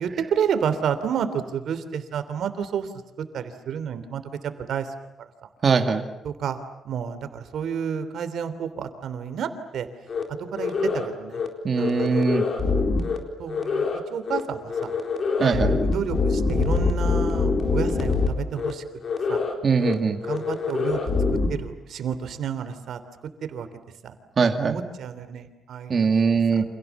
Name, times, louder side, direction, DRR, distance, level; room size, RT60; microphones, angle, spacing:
voice 1, 0.0-2.9 3.3-4.2 4.7-4.9 5.2-5.3 6.2-6.6 6.8-9.9 10.3-11.4 11.7-12.2 13.4-14.9 15.4-18.8 19.3-19.4 20.3-21.0 21.5-23.0 23.5-23.7 24.0-25.9 26.5-26.6, right 7 dB, 65° right, 11 dB, 3.1 m, -30 dB
voice 2, 5.6-6.1 11.6-12.4 15.4-15.8 19.6-20.2 24.4-24.8 25.9-26.6, right 5 dB, 35° right, 5 dB, 2.1 m, -21 dB
sound 1, 10.1-10.2 10.6-11.1 11.3-11.5 11.8-13.2 13.5-14.0 14.3-14.4 14.7-18.3 18.6-18.7 19.0-19.5 19.8-19.9 20.2-21.5, left 4 dB, 40° left, 4.0 m, -24 dB
30.0 x 27.5 x 7.2 m, 0.86 s
cardioid pair, 160°, 0 cm